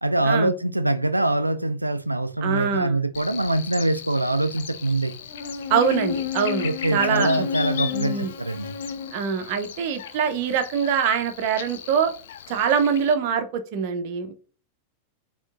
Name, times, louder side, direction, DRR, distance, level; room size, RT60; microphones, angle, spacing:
voice 1, 0.0-5.1 6.6-8.7, right 2 dB, 85° right, 0.4 m, -24 dB
voice 2, 2.4-3.0 5.7-7.5 7.9-8.3 9.1-12.1 12.5-14.3, right 7 dB, 50° right, 0.7 m, -24 dB
Buzz, 3.1-13.1, left 8 dB, 60° left, 0.4 m, -33 dB
4.4 x 2.9 x 2.4 m
figure-of-eight pair, 90°, 0 cm